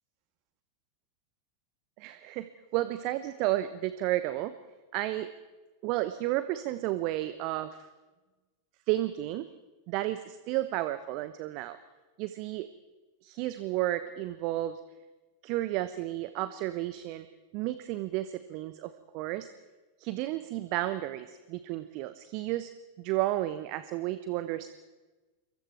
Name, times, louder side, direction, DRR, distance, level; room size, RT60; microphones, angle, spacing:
voice 1, 2.0-4.5 4.9-5.3 5.8-7.9 8.9-9.5 9.9-11.8 12.2-12.7 13.2-14.8 15.4-17.3 17.5-19.5 20.0-22.7 23.0-24.7, right 15 dB, 45° right, 13 dB, 1.0 m, -32 dB
27.0 x 23.0 x 4.6 m, 1.2 s
figure-of-eight pair, 90°, 0 cm